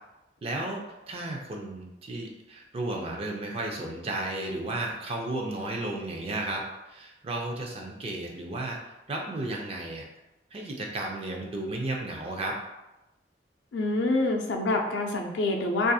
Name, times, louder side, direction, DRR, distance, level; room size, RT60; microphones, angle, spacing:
voice 1, 0.4-8.8 9.1-10.0 10.5-12.6, right 2 dB, 35° right, 0 dB, 0.4 m, -33 dB
voice 2, 13.7-15.9, left 2 dB, 80° left, 3 dB, 0.4 m, -26 dB
2.7 x 2.4 x 2.3 m, 0.96 s
head